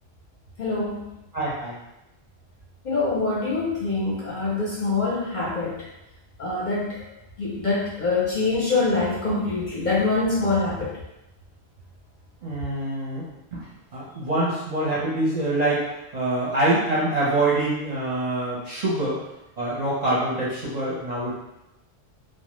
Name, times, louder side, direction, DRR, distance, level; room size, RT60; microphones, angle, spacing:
voice 1, 0.6-1.0 2.8-5.8 6.4-7.0 7.4-11.0, left 3 dB, 55° left, -6 dB, 0.6 m, -24 dB
voice 2, 1.3-1.7 12.4-13.3 13.5-15.8 16.1-19.2 19.6-21.3, right 2 dB, 45° right, -8 dB, 0.6 m, -25 dB
2.1 x 2.0 x 2.9 m, 0.91 s
omnidirectional pair, 1.1 m